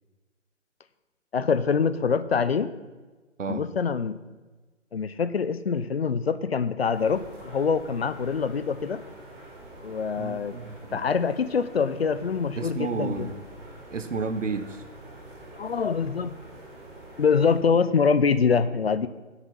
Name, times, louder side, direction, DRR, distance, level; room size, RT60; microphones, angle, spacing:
voice 1, 1.3-2.7 3.5-4.2 4.9-9.0 9.8-10.5 10.9-13.3 15.5-16.4 17.2-19.1, left 5 dB, 55° left, 13 dB, 0.7 m, -24 dB
sound 1, 6.9-17.6, right 1 dB, 45° right, 4.6 m, -46 dB
voice 2, 10.2-11.1 12.6-13.4 13.9-14.8, right 4 dB, 75° right, 10 dB, 1.2 m, -32 dB
12.0 x 8.0 x 5.6 m, 1.3 s
hypercardioid pair, 160°, 37 cm